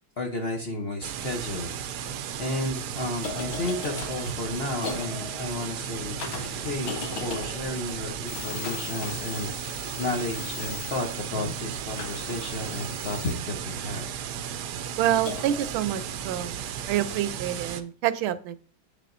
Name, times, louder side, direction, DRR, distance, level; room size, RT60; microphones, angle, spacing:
voice 1, 0.2-1.8 2.4-14.1, left 2 dB, 50° left, 1 dB, 0.8 m, -32 dB
sound 1, 1.0-17.8, right 9 dB, 70° right, 1.0 m, -35 dB
sound 2, 1.1-1.2 1.8-2.2 3.0-10.0 12.0-13.9 15.2-15.7, left 4 dB, 85° left, 1.8 m, -39 dB
sound 3, 11.4-13.3, left 21 dB, 15° left, 0.8 m, -43 dB
voice 2, 15.0-18.6, right 11 dB, 85° right, 14 dB, 1.4 m, -27 dB
8.0 x 6.7 x 2.6 m, 0.41 s
omnidirectional pair, 2.2 m